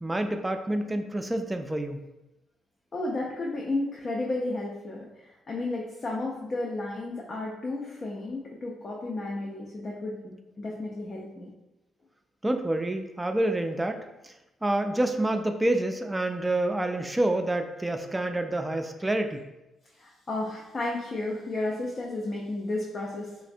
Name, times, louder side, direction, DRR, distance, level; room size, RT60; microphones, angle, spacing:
voice 1, 0.0-2.0 12.4-14.3 14.6-19.4, right 1 dB, 15° right, 6 dB, 0.3 m, -28 dB
voice 2, 2.9-11.5 20.0-23.3, left 2 dB, 45° left, -3 dB, 0.5 m, -33 dB
3.2 x 2.1 x 2.4 m, 0.97 s
hypercardioid pair, 50°, 0 cm